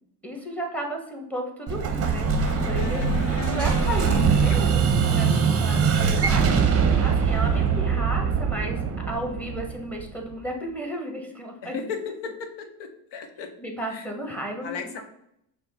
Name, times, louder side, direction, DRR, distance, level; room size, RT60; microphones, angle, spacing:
voice 1, 0.2-2.3 2.7-6.5 7.0-11.8 13.6-15.0, equal, 5° left, 1 dB, 1.1 m, -33 dB
Explosion, 1.7-10.3, right 6 dB, 30° right, 0.7 m, -22 dB
sound 1, 2.3-5.3 7.3-8.0, left 4 dB, 85° left, 0.6 m, -35 dB
voice 2, 11.6-13.5 13.9-14.1 14.6-14.8, left 5 dB, 60° left, 6 dB, 1.0 m, -35 dB
5.5 x 2.2 x 3.9 m, 0.76 s
supercardioid pair, 85°, 49 cm